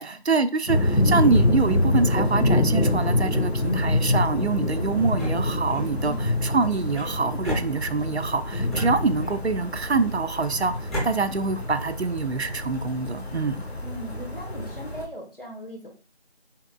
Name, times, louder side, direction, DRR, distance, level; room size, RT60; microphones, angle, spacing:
voice 1, 0.0-13.6, right 4 dB, 80° right, 0.6 m, -25 dB
sound 1, 0.7-15.1, left 1 dB, 75° left, 1.1 m, -26 dB
sound 2, 4.9-5.9 6.9-8.2 8.7-9.6 10.3-11.1, equal, ahead, 0.8 m, -34 dB
voice 2, 6.0-6.4 11.0-11.1 13.8-16.0, equal, 60° left, 1.6 m, -39 dB
5.7 x 3.7 x 2.3 m
figure-of-eight pair, 175°, 32 cm